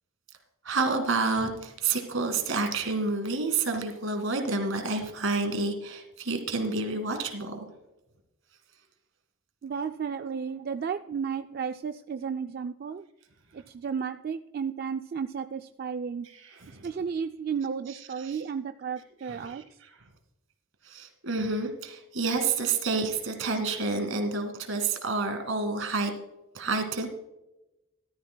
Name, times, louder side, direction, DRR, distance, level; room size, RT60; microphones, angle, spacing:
voice 1, 0.6-7.7 16.2-16.9 18.2-18.4 19.3-19.6 20.8-26.1 26.5-27.1, right 3 dB, 75° right, 6 dB, 2.1 m, -29 dB
voice 2, 9.6-13.0 13.5-16.3 16.8-19.8, right 6 dB, 45° right, 8 dB, 0.3 m, -33 dB
14.5 x 13.0 x 2.3 m, 0.95 s
head